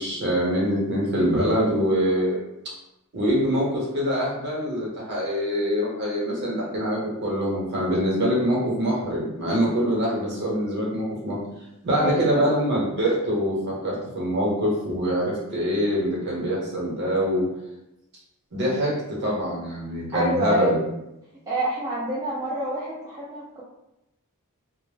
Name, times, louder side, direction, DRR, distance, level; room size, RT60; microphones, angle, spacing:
voice 1, 0.0-2.4 3.1-11.4 11.8-17.5 18.5-20.8, equal, 50° right, -5 dB, 0.9 m, -24 dB
voice 2, 12.0-12.5 20.1-20.8 21.5-23.6, right 1 dB, 15° right, -7 dB, 0.3 m, -27 dB
2.1 x 2.0 x 3.1 m, 0.89 s
head